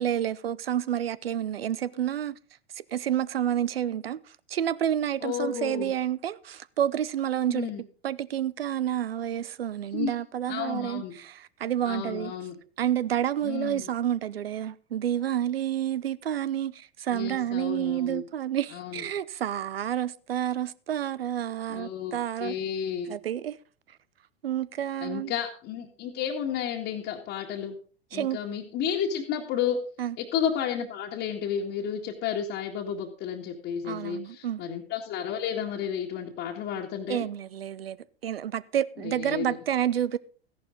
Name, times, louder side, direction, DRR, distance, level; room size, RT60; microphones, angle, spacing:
voice 1, 0.0-2.4 2.8-4.2 4.5-7.7 8.0-12.3 12.8-22.6 23.1-23.6 24.4-25.3 28.1-28.4 30.0-30.2 33.8-34.6 37.1-38.0 38.2-40.2, right 10 dB, 70° right, 0.7 m, -29 dB
voice 2, 5.2-5.9 7.5-7.8 9.9-10.2 10.5-11.2 11.8-12.5 13.4-13.9 17.1-18.2 18.7-19.0 21.7-23.1 25.0-27.8 28.1-29.8 30.2-37.2 39.0-39.4, left 8 dB, 35° left, 2.0 m, -32 dB
14.5 x 11.0 x 3.9 m
figure-of-eight pair, 90°, 31 cm